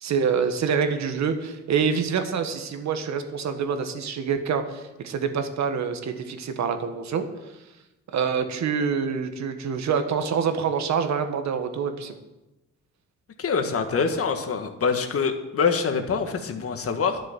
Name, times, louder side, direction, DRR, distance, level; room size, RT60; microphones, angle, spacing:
voice 1, 0.0-7.3 8.1-12.2, right 6 dB, 65° right, 7 dB, 1.5 m, -26 dB
voice 2, 13.4-17.2, left 5 dB, 50° left, 6 dB, 1.6 m, -25 dB
11.5 x 6.7 x 7.9 m, 1.0 s
cardioid pair, 90°, 30 cm